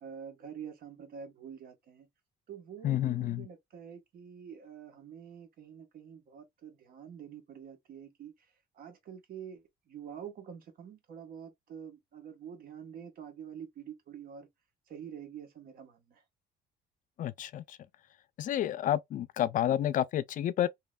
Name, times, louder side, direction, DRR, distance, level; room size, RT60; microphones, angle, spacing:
voice 1, 0.0-2.1 2.5-14.5 14.9-16.2, right 8 dB, 60° right, 1.1 m, -47 dB
voice 2, 2.8-3.5 17.2-17.8 18.4-20.7, left 11 dB, 50° left, 0.4 m, -30 dB
3.1 x 2.8 x 2.3 m
cardioid pair, 110°, 17 cm